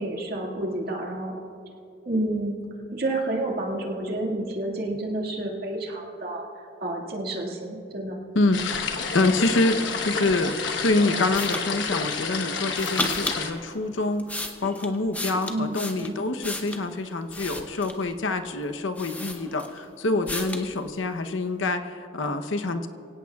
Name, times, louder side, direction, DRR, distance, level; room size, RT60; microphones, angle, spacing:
voice 1, 0.0-1.3 2.1-2.6 2.9-8.2 15.5-16.3, right 1 dB, 50° right, -1 dB, 2.0 m, -30 dB
voice 2, 8.3-10.5 10.8-22.9, left 2 dB, 85° left, 7 dB, 0.8 m, -26 dB
sound 1, 8.5-13.5, left 5 dB, 70° left, 1.1 m, -30 dB
sound 2, 11.3-11.7 12.7-13.4 14.0-16.9 17.3-18.1 18.6-18.7 19.0-19.8 20.3-20.7, left 1 dB, 10° left, 0.8 m, -33 dB
24.0 x 17.0 x 2.4 m, 2.6 s
head